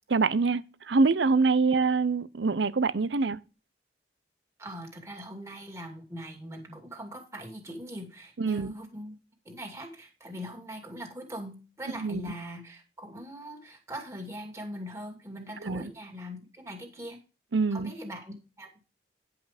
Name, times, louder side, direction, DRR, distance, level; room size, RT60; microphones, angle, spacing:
voice 1, 0.1-3.4 8.4-8.7 11.9-12.3 15.6-15.9 17.5-17.9, right 4 dB, 80° right, 0.6 m, -25 dB
voice 2, 4.6-9.2 9.5-17.2 17.7-18.7, equal, 15° right, 2.4 m, -41 dB
10.5 x 5.8 x 5.1 m
head